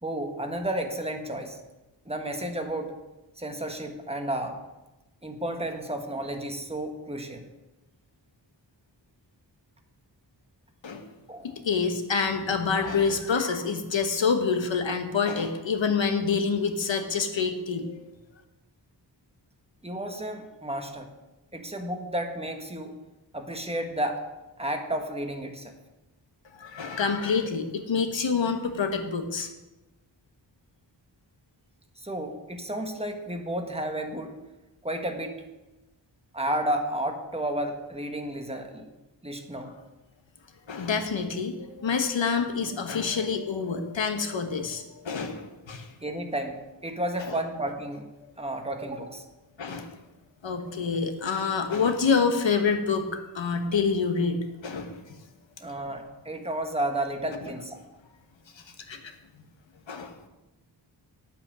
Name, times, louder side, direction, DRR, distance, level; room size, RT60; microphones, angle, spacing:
voice 1, 0.0-1.6 2.1-2.9 3.4-4.6 5.2-7.4 11.3-11.5 19.8-21.1 21.5-22.9 23.3-24.2 24.6-25.8 32.0-34.3 34.8-35.4 36.3-38.9 39.2-39.7 46.0-46.6 46.8-48.1 48.4-49.2 55.6-57.8, right 1 dB, 15° right, 4 dB, 1.3 m, -32 dB
voice 2, 11.6-18.0 26.6-29.5 40.7-45.9 47.2-47.3 49.6-49.9 50.4-53.1 53.3-55.0 58.9-59.0 59.9-60.1, left 5 dB, 75° left, 6 dB, 1.3 m, -27 dB
9.3 x 8.4 x 6.3 m, 1.0 s
wide cardioid pair, 120°, 45 cm